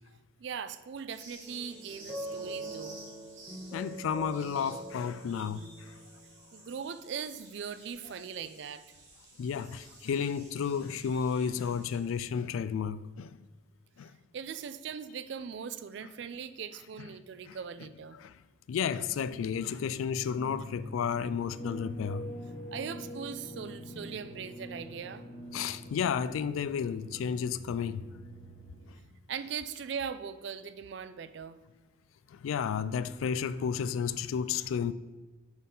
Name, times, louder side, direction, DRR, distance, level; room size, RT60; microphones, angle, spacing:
voice 1, 0.4-3.0 6.5-8.8 14.3-18.2 22.7-25.2 29.3-31.6, right 7 dB, 60° right, 0.3 m, -40 dB
sound 1, 1.1-12.3, right 2 dB, 90° right, 2.2 m, -54 dB
sound 2, 1.5-6.3, right 1 dB, 10° right, 1.2 m, -43 dB
voice 2, 3.7-5.9 9.4-13.4 14.0-14.1 17.0-17.1 17.5-17.6 18.1-18.3 18.7-22.3 25.5-28.0 32.3-34.9, left 7 dB, 85° left, 0.3 m, -32 dB
sound 3, 19.0-28.9, equal, 55° left, 1.3 m, -45 dB
6.2 x 3.9 x 5.4 m
head